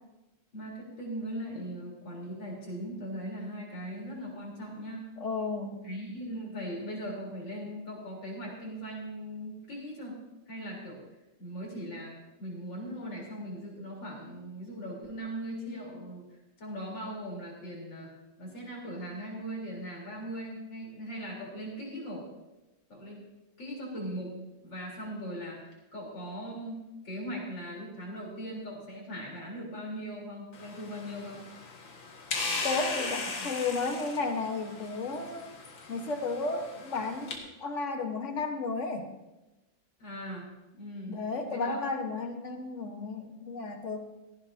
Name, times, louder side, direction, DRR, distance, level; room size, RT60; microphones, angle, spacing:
voice 1, 0.5-5.0 5.8-10.2 10.5-11.0 11.4-16.3 16.6-22.3 22.9-23.3 23.6-24.4 24.6-31.4 33.2-33.5 40.0-41.2 41.5-41.8, equal, 70° left, -3 dB, 4.6 m, -39 dB
voice 2, 5.2-5.8 32.6-35.5 35.9-37.3 37.6-39.1 41.1-44.0, left 3 dB, 40° left, 4 dB, 1.5 m, -33 dB
sound 1, 30.5-37.4, left 3 dB, 85° left, 2.5 m, -38 dB
17.5 x 15.0 x 2.8 m, 1.0 s
omnidirectional pair, 2.1 m